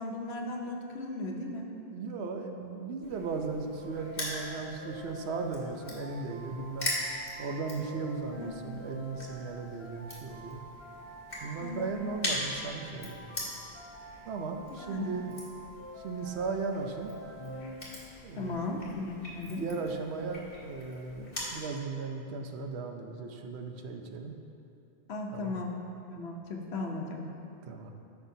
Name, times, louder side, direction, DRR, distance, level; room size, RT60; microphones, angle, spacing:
voice 1, 0.0-1.7 8.4-8.6 11.6-11.9 14.7-15.1 18.4-19.7 25.1-25.7 26.1-27.2, left 2 dB, 75° left, 1 dB, 1.1 m, -36 dB
voice 2, 1.9-6.9 7.4-10.6 11.4-13.2 14.3-15.3 16.0-17.2 18.2-18.7 19.4-24.3 25.3-25.5 27.7-27.9, right 4 dB, 80° right, 4 dB, 0.9 m, -36 dB
Crushing, 3.0-21.6, left 1 dB, 45° left, 2.0 m, -42 dB
sound 1, 3.8-18.3, equal, 25° left, 1.2 m, -48 dB
14.0 x 5.8 x 2.7 m, 2.8 s
omnidirectional pair, 1.1 m